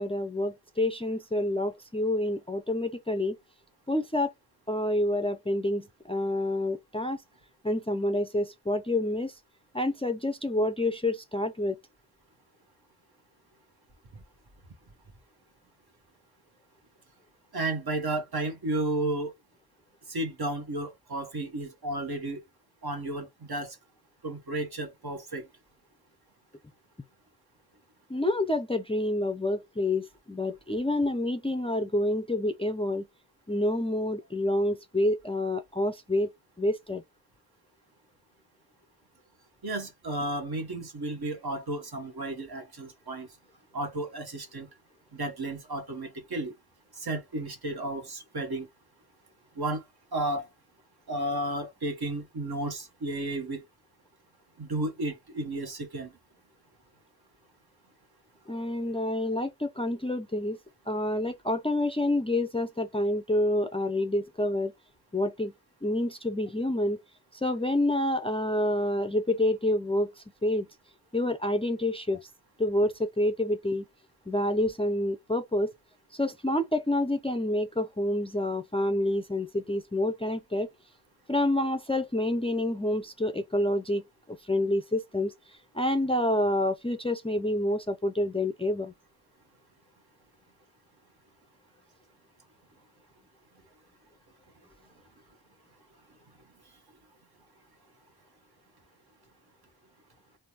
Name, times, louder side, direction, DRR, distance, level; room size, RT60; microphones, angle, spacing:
voice 1, 0.0-3.4 3.9-4.3 4.7-7.2 7.6-9.3 9.7-11.8 28.1-33.1 33.5-36.3 36.6-37.0 58.5-60.6 60.9-64.7 65.1-65.5 65.8-67.0 67.3-70.7 71.1-72.3 72.6-73.8 74.3-75.7 76.1-80.7 81.3-88.9, left 1 dB, 15° left, 0.4 m, -28 dB
voice 2, 17.5-19.3 20.1-22.4 22.8-23.8 24.2-25.5 39.6-43.3 43.7-44.7 45.1-46.5 46.9-48.7 49.6-49.8 50.1-50.5 51.1-53.6 54.6-56.1, right 2 dB, 60° right, 1.1 m, -33 dB
3.4 x 2.1 x 2.8 m
cardioid pair, 45°, 43 cm